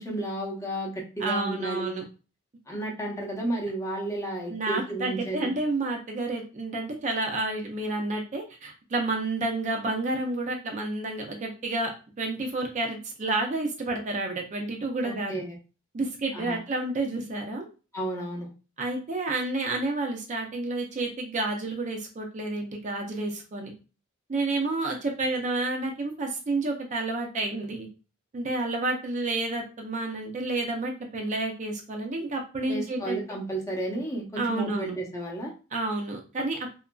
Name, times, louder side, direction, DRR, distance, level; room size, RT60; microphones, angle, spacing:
voice 1, 0.0-2.0 2.7-5.5 15.0-15.6 16.3-16.6 17.9-18.5 32.7-35.5, right 1 dB, 15° left, -3 dB, 0.7 m, -32 dB
voice 2, 1.2-2.0 4.5-15.3 15.9-17.7 18.8-23.7 24.3-27.9 28.3-33.2 34.4-35.0 35.7-36.7, right 2 dB, 35° right, 2 dB, 0.4 m, -30 dB
2.8 x 2.5 x 2.2 m, 0.33 s
head